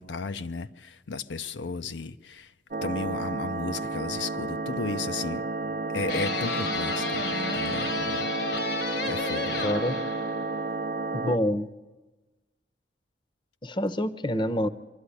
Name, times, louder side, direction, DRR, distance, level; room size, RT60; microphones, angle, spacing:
voice 1, 0.0-2.5 2.8-5.4 5.9-7.3 7.5-8.3 8.7-8.8 9.0-9.7, left 4 dB, 85° left, 0.6 m, -34 dB
sound 1, 2.7-11.4, right 3 dB, 45° right, 0.6 m, -31 dB
sound 2, 6.1-10.6, left 4 dB, 65° left, 1.3 m, -32 dB
voice 2, 9.6-10.0 11.1-11.7 13.6-14.7, left 1 dB, 25° left, 0.7 m, -27 dB
24.0 x 12.5 x 9.9 m
head